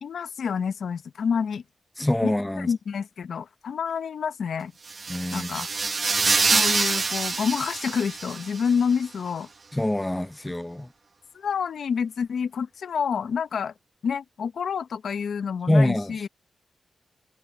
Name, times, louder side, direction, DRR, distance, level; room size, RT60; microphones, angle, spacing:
voice 1, 0.0-1.6 2.2-4.7 5.3-5.7 6.5-9.5 11.3-13.7 14.0-16.3, left 6 dB, 75° left, 0.9 m, -28 dB
voice 2, 2.0-2.7 5.1-5.5 9.7-10.9 15.7-16.3, left 1 dB, 10° left, 0.6 m, -24 dB
sound 1, 4.9-8.7, right 4 dB, 45° right, 1.3 m, -25 dB
wide cardioid pair, 95°, 0 cm